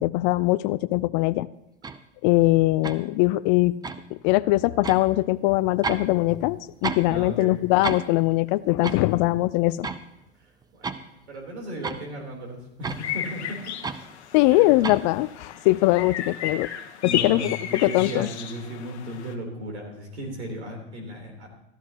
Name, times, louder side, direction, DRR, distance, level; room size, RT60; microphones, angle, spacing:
voice 1, 0.0-1.5 2.2-3.8 4.2-9.9 14.3-16.7 17.0-18.3, left 19 dB, 45° left, 14 dB, 0.4 m, -21 dB
sound 1, 1.8-2.0 2.8-3.0 3.8-4.1 4.8-5.1 5.8-6.1 6.4-7.1 7.4-7.5 7.8-8.1 8.8-9.0 9.8-10.0 10.6-11.0 11.8-12.0 12.8-13.0 13.8-14.1 14.8-15.0, right 4 dB, 10° right, 0.5 m, -31 dB
voice 2, 7.1-7.6 8.9-9.0 10.7-13.6 14.5-14.7 15.6-15.7 17.0-21.5, right 1 dB, 75° right, 2 dB, 3.7 m, -36 dB
sound 2, 12.9-19.3, left 9 dB, 80° left, 1.2 m, -34 dB
13.5 x 13.0 x 3.0 m, 0.84 s
hypercardioid pair, 100°, 33 cm